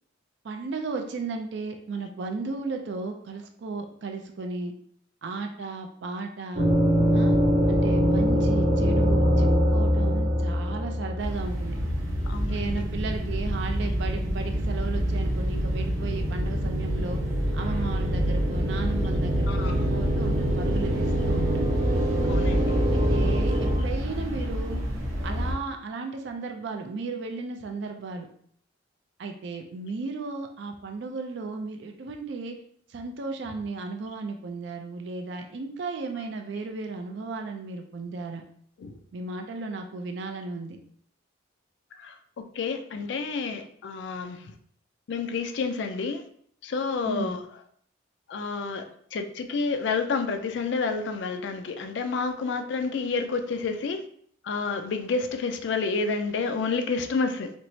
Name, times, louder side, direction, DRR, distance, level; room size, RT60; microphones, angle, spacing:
voice 1, 0.4-4.7 5.2-6.7 7.1-7.4 7.7-11.8 12.5-17.2 17.5-21.6 22.9-24.8 25.2-28.3 29.2-32.6 32.9-38.4 39.1-40.8 47.0-47.4, right 3 dB, 60° right, 4 dB, 0.4 m, -35 dB
sound 1, 6.5-23.8, equal, 40° right, 0.7 m, -25 dB
sound 2, 11.2-25.6, equal, 90° right, 0.8 m, -30 dB
voice 2, 12.3-12.8 19.5-19.8 22.3-22.8 38.8-38.9 42.0-42.2 42.6-44.4 45.1-46.2 46.6-47.4 48.3-48.8 49.1-54.0 54.4-57.5, left 4 dB, 65° left, 6 dB, 0.3 m, -29 dB
4.3 x 2.0 x 2.6 m, 0.62 s
head